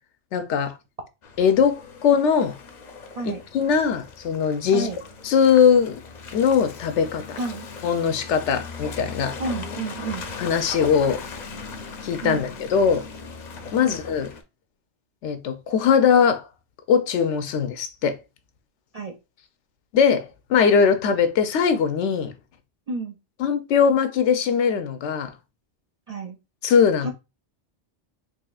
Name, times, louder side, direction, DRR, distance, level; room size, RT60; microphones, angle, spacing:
voice 1, 0.3-0.8 1.4-2.6 3.2-4.9 5.2-5.9 6.3-7.4 7.8-9.4 10.4-11.3 12.0-13.0 13.7-14.3 15.2-16.4 16.9-18.2 19.9-22.3 23.4-25.3 26.6-27.1, left 6 dB, 90° left, 0.9 m, -20 dB
Car passing by / Engine, 1.2-14.4, left 4 dB, 50° left, 0.6 m, -38 dB
voice 2, 9.4-10.2 12.2-12.4 13.8-14.0 18.9-19.1 22.9-23.2 26.1-26.4 27.0-27.1, right 3 dB, 50° right, 0.4 m, -30 dB
4.1 x 3.0 x 2.3 m
omnidirectional pair, 1.2 m